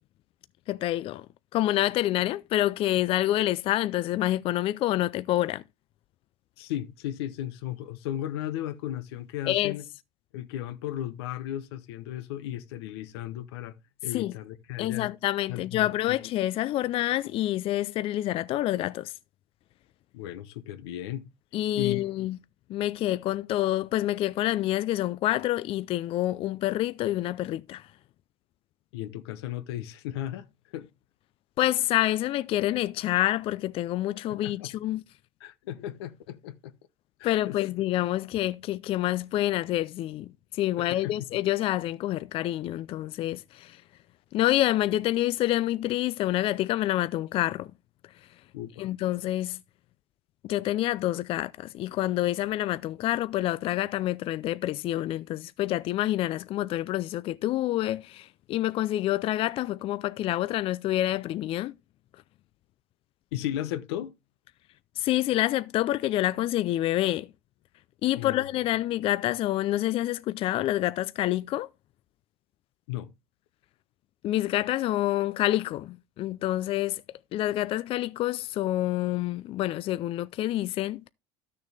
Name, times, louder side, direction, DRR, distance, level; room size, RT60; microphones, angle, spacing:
voice 1, 0.7-1.3 1.5-5.6 9.5-9.8 14.1-14.4 14.8-19.1 21.5-22.4 22.7-27.9 31.6-35.0 37.2-43.8 44.3-47.7 48.8-49.6 50.4-61.7 65.0-67.3 68.0-71.7 74.2-77.0 77.3-81.1, left 14 dB, 45° left, 0.4 m, -27 dB
voice 2, 6.6-9.8 10.3-13.7 14.0-15.1 15.5-15.9 20.1-21.3 21.7-22.0 28.9-30.5 30.7-30.9 34.3-34.7 35.4-36.7 37.2-37.6 40.8-41.3 48.5-48.9 63.3-64.1 68.1-68.4 72.9-73.1, left 12 dB, 85° left, 0.9 m, -35 dB
12.5 x 6.7 x 3.4 m
supercardioid pair, 110°, 13 cm